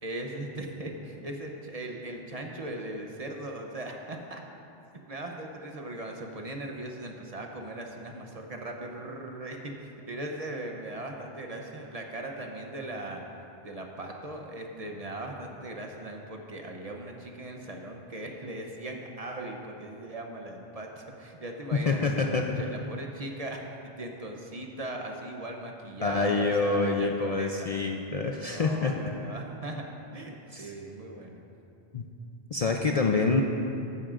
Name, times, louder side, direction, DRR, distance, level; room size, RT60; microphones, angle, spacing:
voice 1, 0.0-4.4 5.1-13.2 13.6-23.6 23.9-27.8 28.4-31.4, right 1 dB, 40° right, 2 dB, 0.8 m, -39 dB
voice 2, 21.9-22.4 26.0-28.9 30.5-30.7 31.9-32.0 32.5-33.4, left 4 dB, 50° left, 2 dB, 0.5 m, -26 dB
14.5 x 9.9 x 2.5 m, 2.7 s
omnidirectional pair, 1.0 m